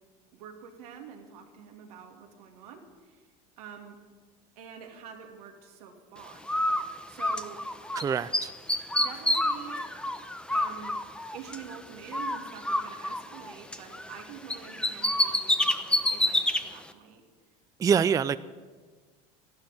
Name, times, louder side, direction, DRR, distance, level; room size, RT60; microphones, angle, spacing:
voice 1, 0.3-3.2 3.6-4.0 4.6-6.5 7.1-7.6 8.9-9.9 10.5-11.0 11.3-17.2 17.9-18.2, right 7 dB, 85° right, 2 dB, 2.5 m, -46 dB
Bird, 6.5-8.0 8.3-11.8 12.1-14.2 14.5-16.6, left 1 dB, 5° left, 0.9 m, -28 dB
voice 2, 7.9-8.5 17.8-18.4, right 7 dB, 20° right, 15 dB, 0.4 m, -25 dB
12.0 x 12.0 x 9.1 m, 1.5 s
supercardioid pair, 100°, 19 cm